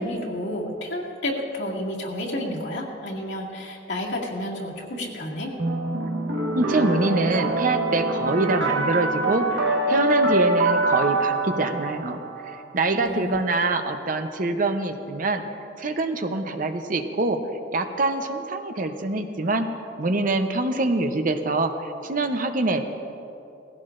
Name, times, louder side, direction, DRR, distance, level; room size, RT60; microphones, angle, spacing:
voice 1, 0.0-5.5 13.0-13.4, left 1 dB, 70° left, -3 dB, 2.1 m, -30 dB
sound 1, 5.6-12.6, right 2 dB, 85° right, 1.4 m, -24 dB
voice 2, 6.5-12.2 12.7-15.4 15.8-17.4 17.7-19.7 20.0-22.8, right 2 dB, 45° right, 7 dB, 0.7 m, -25 dB
18.5 x 16.0 x 2.5 m, 2.7 s
head